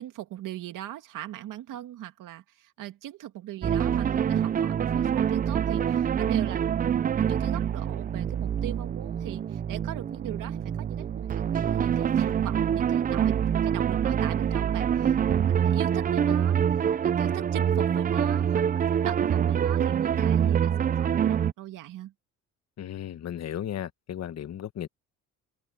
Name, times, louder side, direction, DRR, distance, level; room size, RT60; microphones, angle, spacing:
voice 1, 0.0-22.1, right 13 dB, 75° right, 2.6 m, -40 dB
sound 1, 3.6-21.5, right 8 dB, 25° right, 0.4 m, -25 dB
voice 2, 22.8-24.9, left 10 dB, 50° left, 1.3 m, -35 dB
open air
cardioid pair, 105°, 33 cm